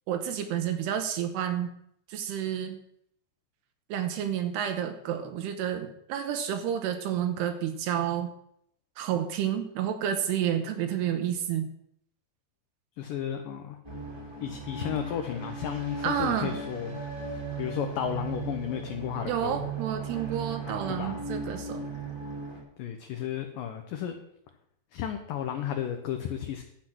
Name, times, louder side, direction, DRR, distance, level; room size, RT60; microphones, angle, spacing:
voice 1, 0.1-1.7 2.1-2.8 3.9-8.3 9.0-11.7 16.0-16.6 19.2-21.8, right 9 dB, 80° right, 7 dB, 2.8 m, -30 dB
voice 2, 13.0-13.8 14.4-17.0 17.3-19.6 20.7-21.2 22.8-24.2 24.9-26.6, left 9 dB, 75° left, 5 dB, 2.1 m, -33 dB
sound 1, 13.8-22.6, right 4 dB, 10° right, 1.2 m, -37 dB
12.0 x 8.0 x 6.0 m, 0.72 s
omnidirectional pair, 4.9 m